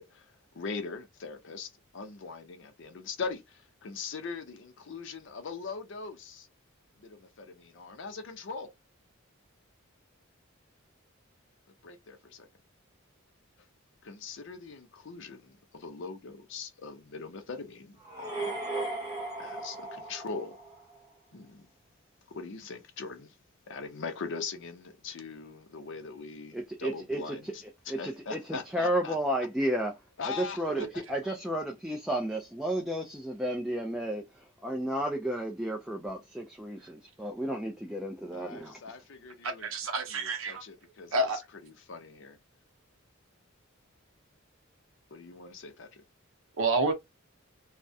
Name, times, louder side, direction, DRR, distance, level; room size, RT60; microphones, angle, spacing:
voice 1, 0.0-6.5 7.0-8.7 11.8-12.5 14.0-18.6 19.4-20.6 21.3-21.7 22.3-23.3 23.7-29.2 30.2-31.3 38.3-39.7 40.1-41.3 41.6-42.4 45.1-46.0, left 4 dB, 60° left, 0.5 m, -41 dB
sound 1, 18.0-21.0, right 2 dB, 20° right, 0.8 m, -37 dB
voice 2, 26.5-27.5 27.9-28.4 28.7-29.9 30.4-30.8 31.1-34.2 34.6-38.8, right 1 dB, ahead, 0.3 m, -32 dB
voice 3, 39.4-40.6 41.1-41.4 46.6-46.9, right 2 dB, 75° right, 0.7 m, -29 dB
2.3 x 2.1 x 2.5 m
head